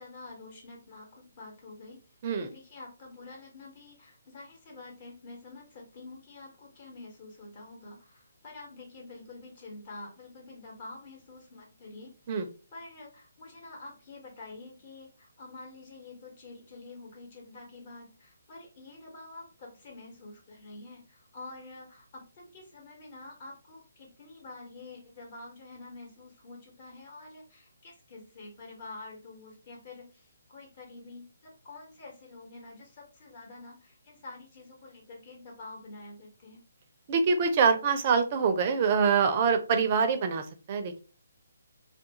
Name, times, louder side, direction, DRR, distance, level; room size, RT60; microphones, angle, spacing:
voice 1, 0.0-2.0 2.4-12.1 12.7-36.6, left 3 dB, 40° left, -1 dB, 1.1 m, -47 dB
voice 2, 37.1-41.0, right 5 dB, 35° right, 8 dB, 0.4 m, -25 dB
2.4 x 2.3 x 2.8 m, 0.35 s
figure-of-eight pair, 145°, 0 cm